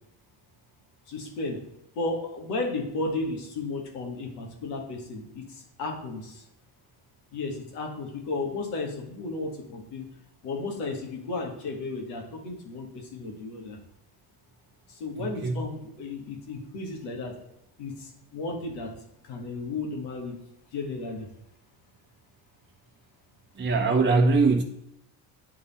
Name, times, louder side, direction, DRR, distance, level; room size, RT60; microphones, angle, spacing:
voice 1, 1.1-1.6 2.0-6.4 7.3-10.1 10.4-13.8 14.9-17.3 17.8-18.9 19.2-20.4 20.7-21.3, left 3 dB, 80° left, 1 dB, 1.9 m, -34 dB
voice 2, 15.2-15.5 23.6-24.6, right 3 dB, 25° right, 1 dB, 0.9 m, -22 dB
9.8 x 3.6 x 4.2 m, 0.80 s
supercardioid pair, 70°, 48 cm